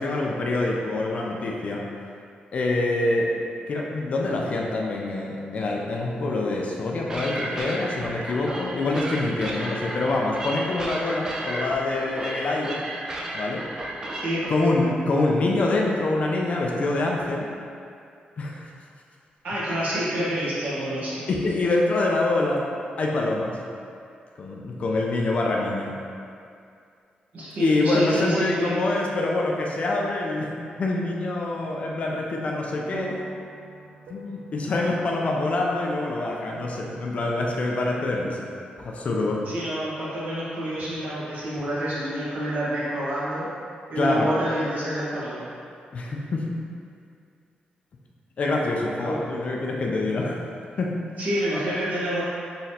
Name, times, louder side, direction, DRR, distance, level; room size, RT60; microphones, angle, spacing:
voice 1, 0.0-1.8 2.5-3.3 3.7-12.8 13.3-13.7 14.5-17.5 18.4-18.7 21.3-22.7 23.0-23.6 24.4-25.9 27.6-30.5 30.8-33.2 34.1-38.4 38.8-39.4 44.0-44.3 45.9-46.5 48.4-50.4 50.8-51.0, left 2 dB, 45° left, -1 dB, 0.4 m, -25 dB
sound 1, 7.1-14.5, right 1 dB, 20° right, 0.4 m, -34 dB
voice 2, 14.1-14.4 19.4-21.2 27.3-28.8 39.4-43.5 43.9-45.4 49.0-49.3 51.2-52.2, right 1 dB, 55° right, -9 dB, 1.2 m, -28 dB
sound 2, 32.9-38.4 39.1-40.2, right 2 dB, 90° right, 0.3 m, -44 dB
4.0 x 3.0 x 2.7 m, 2.4 s
wide cardioid pair, 150°, 3 cm